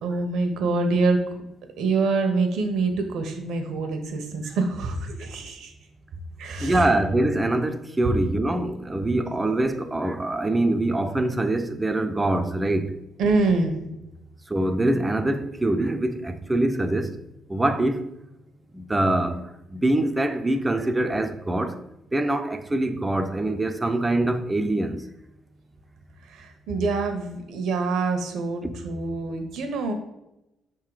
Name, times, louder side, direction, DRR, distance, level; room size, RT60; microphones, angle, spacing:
voice 1, 0.0-1.2 1.8-5.7 6.4-6.9 13.2-13.7 26.2-29.9, right 3 dB, 80° right, 1.0 m, -25 dB
voice 2, 6.6-13.0 14.5-17.2 17.5-18.1 18.7-21.8 22.1-25.1 28.6-28.7, right 1 dB, 15° right, 0.5 m, -24 dB
5.6 x 3.7 x 4.8 m
cardioid pair, 90°, 0 cm